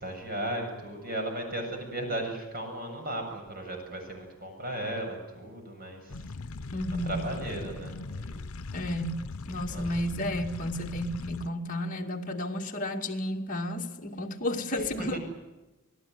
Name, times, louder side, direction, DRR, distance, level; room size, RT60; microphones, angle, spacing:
voice 1, 0.0-6.3 7.0-8.4 9.7-9.8 14.8-15.2, right 1 dB, 45° right, 7.5 m, -36 dB
sound 1, 6.1-11.5, left 3 dB, 80° left, 0.8 m, -39 dB
voice 2, 6.7-7.3 8.7-9.2 9.5-15.2, left 1 dB, 40° left, 2.4 m, -32 dB
28.0 x 18.0 x 9.5 m
head